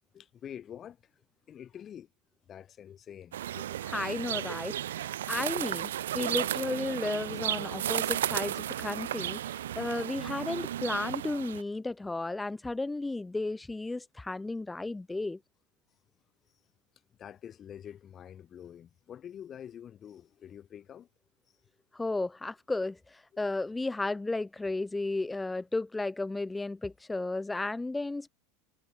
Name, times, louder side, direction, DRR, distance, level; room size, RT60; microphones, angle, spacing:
voice 1, 0.1-1.0 1.5-2.1 2.4-3.8 4.3-4.7 5.3-5.8 6.6-6.8 9.9-10.1 17.2-21.1 24.1-24.2, left 9 dB, 35° left, 4.6 m, -47 dB
sound 1, 3.3-11.6, right 12 dB, 80° right, 1.6 m, -34 dB
voice 2, 3.8-5.9 6.1-15.4 21.9-28.3, left 2 dB, 10° left, 1.3 m, -34 dB
hypercardioid pair, 90°, 0 cm